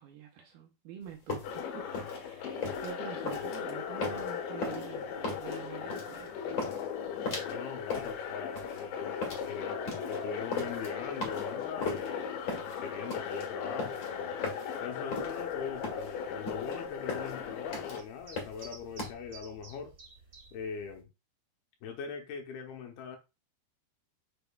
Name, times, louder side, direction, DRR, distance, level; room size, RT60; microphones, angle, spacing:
voice 1, 0.0-6.6 7.9-8.0, right 9 dB, 75° right, 2.5 m, -47 dB
sound 1, 1.1-19.1, left 3 dB, 40° left, 1.8 m, -38 dB
sound 2, 1.4-18.0, left 7 dB, 90° left, 3.6 m, -38 dB
voice 2, 7.4-12.4 12.8-14.4 14.8-20.0 20.5-21.1 21.8-23.2, left 6 dB, 75° left, 2.6 m, -41 dB
sound 3, 15.1-21.0, right 4 dB, 35° right, 1.9 m, -55 dB
6.9 x 5.9 x 2.3 m
omnidirectional pair, 4.9 m